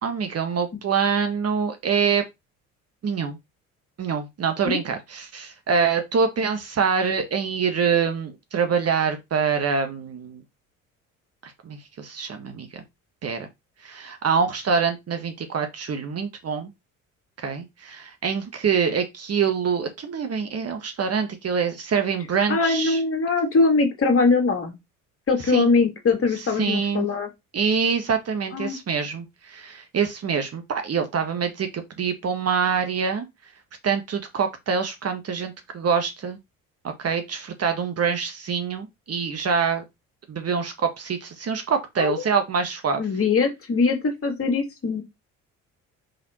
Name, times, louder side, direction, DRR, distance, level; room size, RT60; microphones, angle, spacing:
voice 1, 0.0-2.2 3.0-3.4 4.0-10.4 11.4-12.8 13.2-13.5 13.8-16.7 17.4-23.0 25.5-25.7 26.6-27.1 27.5-33.3 33.8-36.4 37.0-39.8 40.3-43.0, right 6 dB, 35° right, 1.7 m, -25 dB
voice 2, 22.5-24.8 25.3-27.3 28.5-28.8 42.0-42.2 43.0-45.0, left 4 dB, 30° left, 2.5 m, -22 dB
5.3 x 4.2 x 4.4 m
figure-of-eight pair, 55°, 41 cm